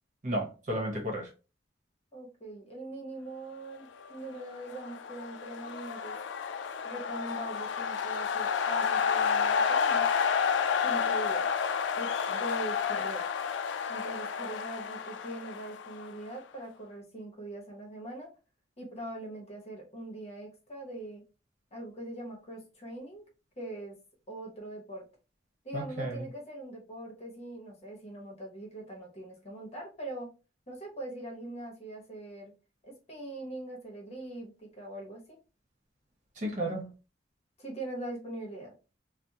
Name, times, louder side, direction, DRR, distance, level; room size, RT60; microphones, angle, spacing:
voice 1, 0.2-1.3 25.7-26.2 36.4-36.9, right 1 dB, 45° right, 1.1 m, -33 dB
voice 2, 2.1-6.2 6.8-10.1 10.8-11.5 12.0-13.2 13.9-18.3 18.8-21.2 21.7-23.3 23.6-24.0 24.3-25.1 25.6-30.3 30.7-32.5 32.8-35.4 37.6-38.7, right 1 dB, 35° left, 1.0 m, -42 dB
sound 1, 4.4-16.3, left 6 dB, 85° left, 0.4 m, -30 dB
3.4 x 2.1 x 2.8 m
head